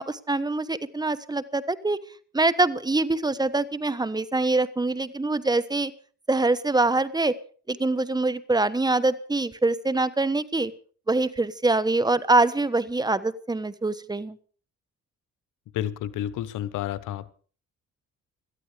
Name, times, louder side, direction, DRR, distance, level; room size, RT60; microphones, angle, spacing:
voice 1, 0.0-2.0 2.3-5.9 6.3-7.3 7.7-10.7 11.1-14.4, right 2 dB, 15° right, 15 dB, 1.2 m, -24 dB
voice 2, 15.7-17.3, left 12 dB, 90° left, 16 dB, 1.1 m, -30 dB
18.0 x 13.0 x 5.1 m, 0.42 s
cardioid pair, 90°, 30 cm